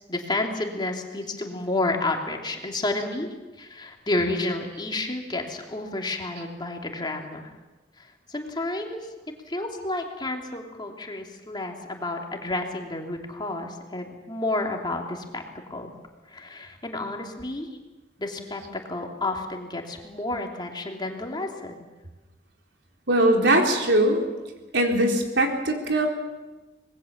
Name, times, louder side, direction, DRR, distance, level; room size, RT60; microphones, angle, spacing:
voice 1, 0.1-3.3 3.6-7.5 8.0-9.0 9.5-15.4 15.7-15.9 16.3-17.7 18.2-18.6 18.9-21.9, left 2 dB, 25° left, 2 dB, 2.9 m, -30 dB
voice 2, 23.1-24.2 24.7-26.1, right 1 dB, 80° right, 2 dB, 4.1 m, -21 dB
25.5 x 20.5 x 7.3 m, 1.1 s
head